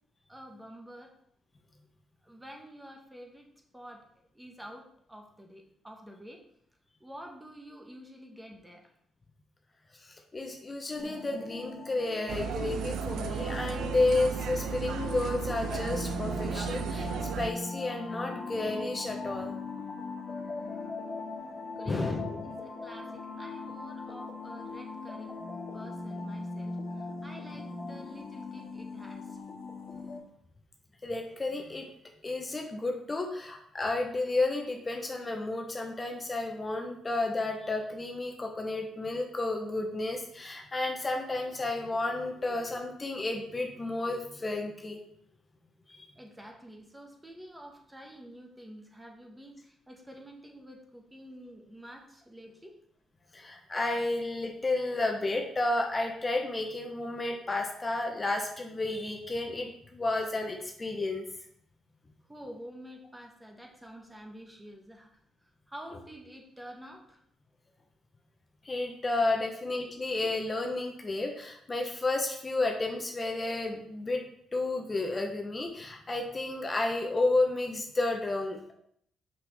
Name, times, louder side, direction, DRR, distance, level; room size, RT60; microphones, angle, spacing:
voice 1, 0.3-1.1 2.2-3.5 3.7-4.0 4.3-6.4 7.0-8.9 21.6-29.4 46.1-52.7 62.3-65.1 65.7-67.2 69.9-70.0, equal, 10° right, 2 dB, 1.3 m, -48 dB
voice 2, 10.3-17.1 17.4-19.6 21.9-22.5 31.0-31.9 32.2-45.0 45.9-46.1 53.3-61.3 68.6-74.2 74.5-78.7, left 2 dB, 25° left, 2 dB, 0.8 m, -31 dB
sound 1, 11.0-30.2, left 3 dB, 45° left, 1.6 m, -40 dB
sound 2, 12.3-17.5, right 8 dB, 80° right, 0.4 m, -35 dB
5.6 x 5.6 x 3.4 m, 0.69 s
cardioid pair, 90°, 0 cm